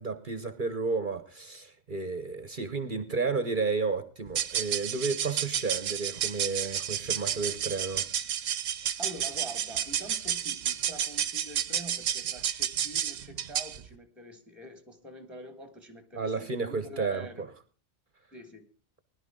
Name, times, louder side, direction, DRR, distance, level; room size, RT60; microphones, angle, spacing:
voice 1, 0.0-8.1 16.1-17.5, right 4 dB, 45° right, 12 dB, 1.1 m, -32 dB
sound 1, 4.3-13.8, right 9 dB, 80° right, 1.2 m, -31 dB
voice 2, 9.0-17.5 18.3-18.7, right 1 dB, ahead, 8 dB, 1.6 m, -45 dB
20.0 x 11.5 x 3.7 m, 0.36 s
omnidirectional pair, 1.3 m